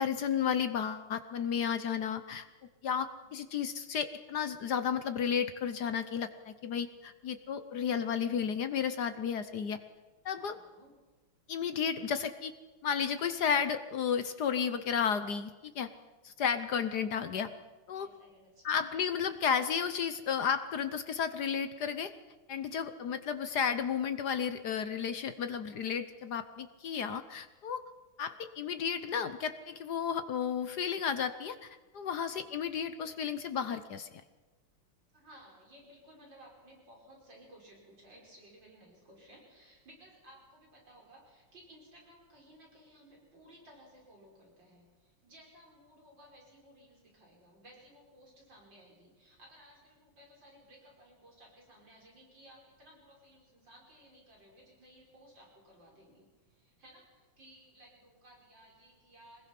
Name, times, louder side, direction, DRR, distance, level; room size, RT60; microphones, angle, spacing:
voice 1, 0.0-2.5 2.8-9.8 10.2-10.5 11.5-12.5 12.8-15.9 16.2-17.5 17.9-18.1 18.6-22.1 22.5-27.8 28.2-34.1, left 7 dB, 60° left, 10 dB, 1.2 m, -33 dB
voice 2, 3.1-3.4 10.3-11.0 17.9-18.8 32.0-32.5 35.1-59.5, equal, 55° right, -2 dB, 5.9 m, -58 dB
24.5 x 20.5 x 6.0 m, 1.2 s
omnidirectional pair, 2.4 m